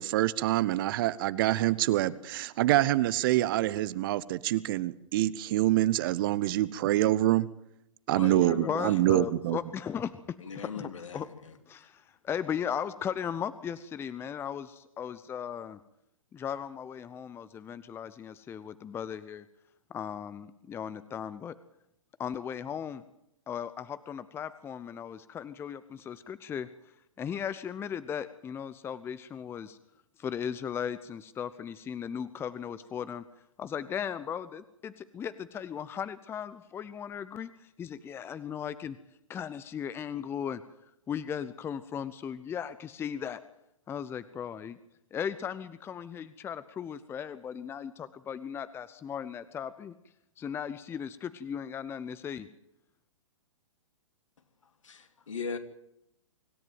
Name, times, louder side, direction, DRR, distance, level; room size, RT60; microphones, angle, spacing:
voice 1, 0.0-7.4 8.1-9.6, right 15 dB, 40° right, 18 dB, 0.9 m, -26 dB
voice 2, 8.1-9.0 10.4-11.2 54.8-55.6, left 5 dB, 70° left, 7 dB, 2.7 m, -37 dB
voice 3, 8.6-10.1 10.5-11.3 11.7-15.8 16.3-19.5 19.9-21.5 22.2-23.0 23.5-26.7 27.2-29.8 30.2-33.2 33.6-39.0 39.3-40.6 41.1-43.4 43.9-44.8 45.1-49.9 50.4-52.5, left 8 dB, 15° left, 15 dB, 0.7 m, -37 dB
25.5 x 13.5 x 9.3 m, 0.82 s
figure-of-eight pair, 115°, 17 cm